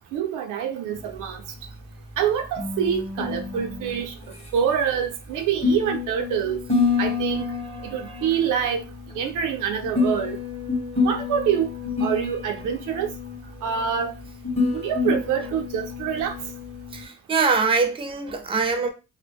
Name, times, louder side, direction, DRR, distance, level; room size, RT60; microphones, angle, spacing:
voice 1, 0.1-1.4 2.2-4.1 4.5-6.6 7.0-7.4 7.9-8.8 9.2-10.4 11.0-11.7 12.0-13.1 13.6-14.1 14.7-16.3, right 8 dB, 80° right, 0.5 m, -25 dB
sound 1, 1.0-17.0, left 4 dB, 20° left, 0.9 m, -29 dB
voice 2, 7.9-8.3 16.9-18.9, right 4 dB, 20° right, 0.5 m, -24 dB
2.1 x 2.0 x 3.4 m
cardioid pair, 90°, 30 cm